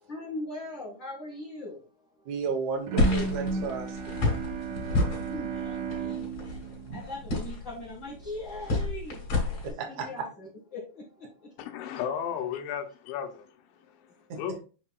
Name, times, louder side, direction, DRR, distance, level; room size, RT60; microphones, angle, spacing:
voice 1, 0.0-2.3 4.6-11.5 13.8-14.4, left 2 dB, 75° left, 1.0 m, -42 dB
voice 2, 2.2-4.3 4.8-5.0 6.8-7.0 9.8-10.3 14.3-14.4, right 5 dB, 80° right, 1.7 m, -34 dB
Bowed string instrument, 2.9-7.9, right 4 dB, 60° right, 2.3 m, -34 dB
sound 1, 3.0-9.7, left 2 dB, 40° left, 3.4 m, -30 dB
voice 3, 11.6-13.7 14.3-14.6, left 8 dB, 90° left, 3.2 m, -34 dB
6.9 x 5.9 x 2.3 m
omnidirectional pair, 5.2 m